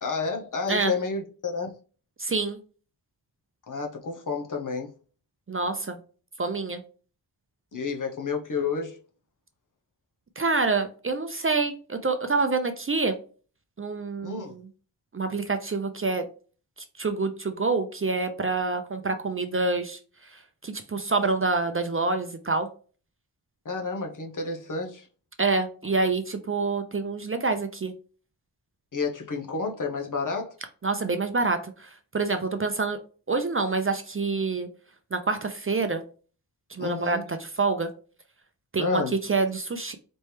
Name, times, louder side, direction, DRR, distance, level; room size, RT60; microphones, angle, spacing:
voice 1, 0.0-1.7 3.7-4.9 7.7-9.0 14.2-14.6 23.6-25.1 28.9-30.5 36.8-37.2 38.8-39.1, left 4 dB, 45° left, 0.8 m, -30 dB
voice 2, 2.2-2.6 5.5-6.0 6.4-6.8 10.4-13.1 13.8-14.6 15.1-16.2 17.0-20.0 20.6-22.7 25.4-27.9 30.8-33.0 33.3-34.7 35.1-36.0 36.7-37.9 38.7-39.0 39.3-40.0, right 3 dB, 30° right, 0.5 m, -27 dB
4.2 x 3.2 x 3.2 m
wide cardioid pair, 110°, 42 cm